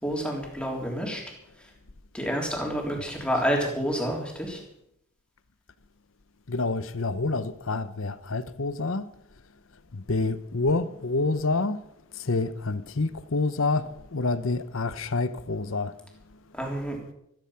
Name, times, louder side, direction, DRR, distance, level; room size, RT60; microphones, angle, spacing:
voice 1, 0.0-1.2 2.1-4.6 16.5-17.0, equal, 5° left, 3.6 m, -28 dB
voice 2, 6.5-9.1 9.9-11.8 12.1-16.0, left 3 dB, 60° left, 0.9 m, -28 dB
15.0 x 14.0 x 5.8 m
head